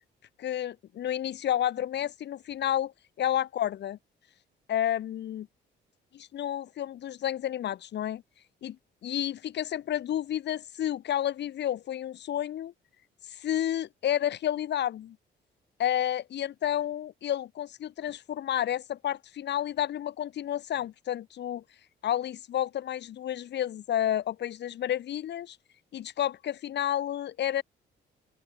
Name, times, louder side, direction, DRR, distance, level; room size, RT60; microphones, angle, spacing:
voice 1, 0.4-4.0 4.7-5.5 6.1-8.2 8.6-8.8 9.0-12.7 13.3-15.2 15.8-21.6 22.0-25.6 25.9-27.6, left 11 dB, 60° left, 0.8 m, -30 dB
open air
cardioid pair, 90°, 20 cm